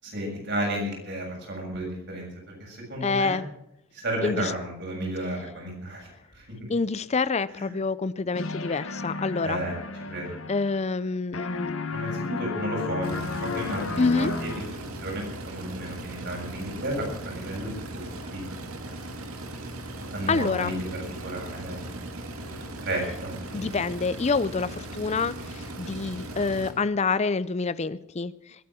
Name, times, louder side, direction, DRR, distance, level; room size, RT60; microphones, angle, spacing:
voice 1, 0.0-3.4 3.9-6.1 6.3-6.7 7.5-7.7 9.4-10.4 11.9-18.0 18.3-18.4 20.0-22.1 22.4-23.7, right 1 dB, 50° right, -1 dB, 7.3 m, -33 dB
voice 2, 3.0-3.5 4.2-4.5 6.7-9.6 10.5-11.7 14.0-14.3 20.3-20.8 23.5-28.3, left 4 dB, 30° left, 18 dB, 0.5 m, -27 dB
sound 1, 8.3-11.1 11.3-14.9, left 3 dB, 70° left, 1.2 m, -33 dB
sound 2, 13.0-26.7, right 1 dB, 80° right, 2.2 m, -38 dB
21.5 x 9.4 x 6.2 m, 0.86 s
head